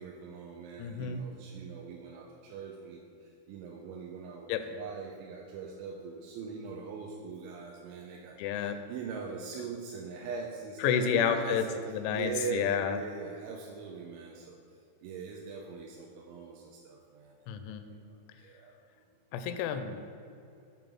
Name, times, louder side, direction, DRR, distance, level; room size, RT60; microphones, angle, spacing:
voice 1, 0.0-14.6 15.0-17.4 17.9-18.0 18.4-18.8, right 5 dB, 90° right, -2 dB, 3.0 m, -41 dB
voice 2, 0.8-1.2 4.5-4.6 8.4-8.8 10.8-13.0 17.5-17.9 19.3-20.0, left 7 dB, 85° left, 8 dB, 3.0 m, -30 dB
7.6 x 5.2 x 6.0 m, 2.7 s
omnidirectional pair, 5.4 m